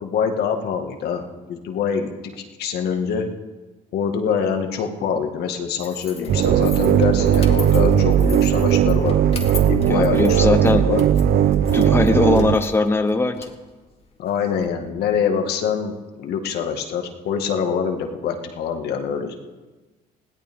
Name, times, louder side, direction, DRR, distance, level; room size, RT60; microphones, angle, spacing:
voice 1, 0.0-2.1 2.6-3.3 3.9-9.2 9.5-11.0 14.2-19.3, left 7 dB, 75° left, 4 dB, 1.9 m, -25 dB
sound 1, 5.8-14.7, left 5 dB, 35° left, 2.3 m, -39 dB
sound 2, 6.3-12.6, right 10 dB, 60° right, 0.7 m, -17 dB
voice 2, 9.9-10.8 11.7-13.4, left 3 dB, 15° left, 7 dB, 1.0 m, -19 dB
21.0 x 17.0 x 3.7 m, 1.2 s
cardioid pair, 110°, 17 cm